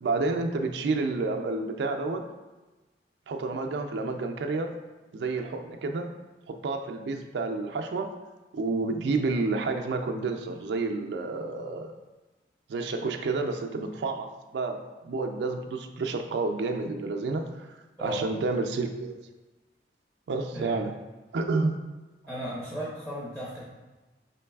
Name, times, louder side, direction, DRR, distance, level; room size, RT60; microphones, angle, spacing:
voice 1, 0.0-2.3 3.3-4.7 5.1-6.1 6.5-8.1 8.5-11.9 12.7-14.3 14.5-17.5 18.0-19.2 20.3-21.0 21.3-21.8, right 3 dB, 75° right, 4 dB, 0.3 m, -29 dB
voice 2, 22.3-23.6, equal, 5° left, -7 dB, 0.5 m, -35 dB
3.9 x 3.0 x 2.3 m, 1.1 s
head